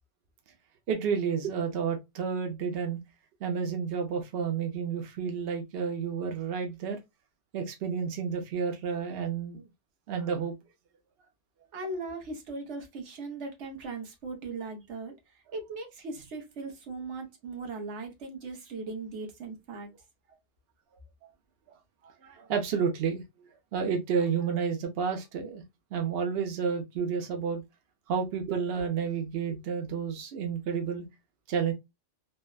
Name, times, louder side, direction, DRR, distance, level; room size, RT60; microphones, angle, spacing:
voice 1, 0.9-3.0 3.4-7.0 7.5-9.6 10.1-10.5 21.7-21.8 22.0-23.2 23.7-25.6 25.9-27.6 28.1-31.0 31.5-31.7, right 6 dB, 60° right, 0.8 m, -30 dB
voice 2, 11.7-19.9, right 3 dB, 80° right, 1.1 m, -39 dB
3.3 x 2.1 x 2.2 m
omnidirectional pair, 1.2 m